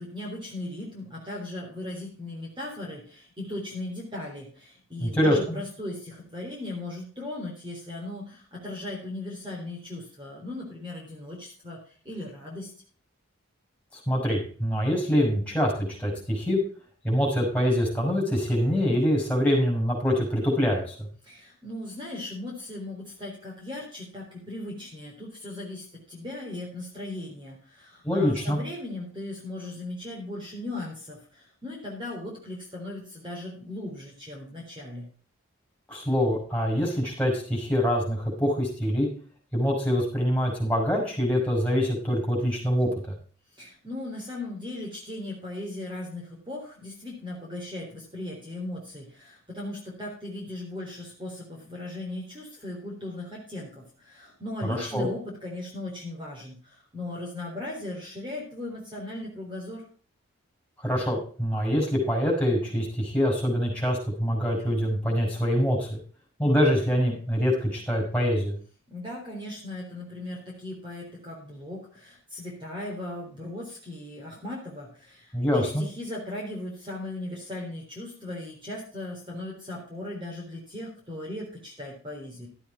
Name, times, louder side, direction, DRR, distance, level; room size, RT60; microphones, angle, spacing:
voice 1, 0.0-11.8 12.0-12.7 21.2-35.1 43.6-59.8 68.9-82.5, left 1 dB, 25° right, -2 dB, 3.9 m, -38 dB
voice 2, 5.0-5.6 14.1-16.6 17.0-20.9 28.0-28.6 35.9-39.1 39.5-42.9 54.7-55.1 60.8-66.0 66.4-68.6 75.3-75.8, equal, 5° left, -2 dB, 5.5 m, -25 dB
13.5 x 8.4 x 4.4 m, 0.41 s
head